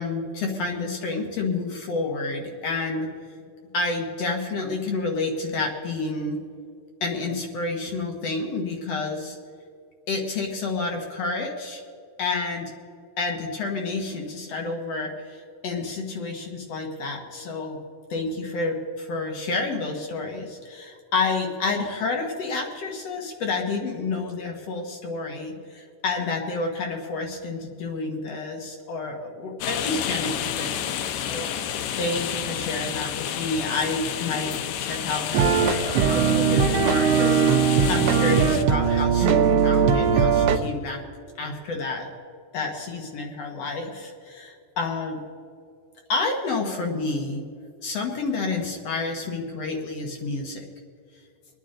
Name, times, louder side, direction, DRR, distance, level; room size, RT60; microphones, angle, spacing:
voice 1, 0.0-3.1 3.7-6.4 7.0-9.4 10.1-11.8 12.2-12.7 13.2-17.8 18.1-41.0 41.4-42.1 42.5-45.2 46.1-47.4 47.8-50.6, left 3 dB, 60° left, 1 dB, 2.1 m, -29 dB
sound 1, 29.6-38.6, left 9 dB, 75° left, 1.8 m, -30 dB
sound 2, 35.3-40.6, right 6 dB, 70° right, 1.5 m, -20 dB
24.5 x 9.7 x 3.8 m, 2.4 s
omnidirectional pair, 3.7 m